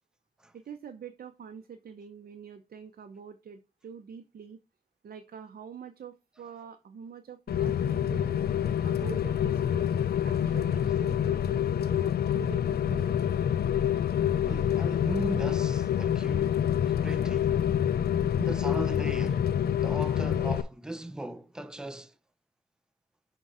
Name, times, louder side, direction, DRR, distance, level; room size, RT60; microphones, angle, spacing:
voice 1, 0.5-4.6 5.0-8.4 8.8-13.3, right 7 dB, 70° right, 0.7 m, -45 dB
Rain, 7.5-20.6, left 9 dB, 75° left, 0.4 m, -27 dB
voice 2, 14.4-17.6 18.4-19.5 19.8-22.1, right 1 dB, 5° right, 0.6 m, -38 dB
6.1 x 3.7 x 5.4 m
cardioid pair, 75°, 16 cm